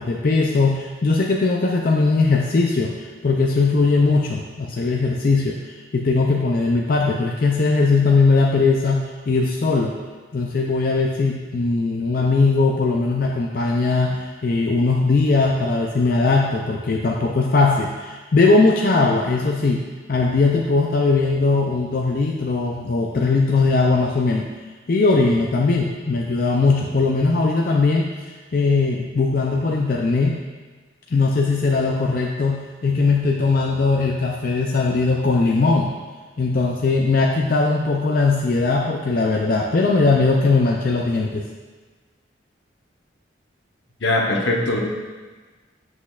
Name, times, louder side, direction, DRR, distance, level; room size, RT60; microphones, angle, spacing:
voice 1, 0.0-10.0 10.3-19.8 20.1-24.5 24.9-30.4 31.1-35.9 36.4-41.5, left 3 dB, 50° left, -1 dB, 0.4 m, -19 dB
voice 2, 44.0-44.8, left 2 dB, 75° left, 0 dB, 1.0 m, -20 dB
7.6 x 6.2 x 2.4 m, 1.3 s
head